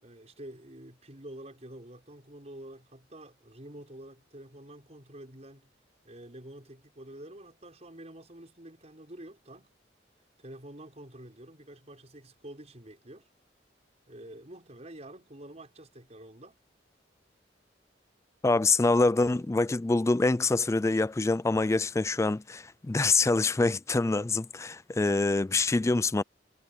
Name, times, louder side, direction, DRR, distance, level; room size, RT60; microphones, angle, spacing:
voice 1, 0.0-5.7 6.0-9.7 10.4-13.3 14.1-16.6 23.0-23.2, right 1 dB, 40° right, 5.5 m, -48 dB
voice 2, 18.4-26.2, left 3 dB, 15° left, 0.3 m, -25 dB
head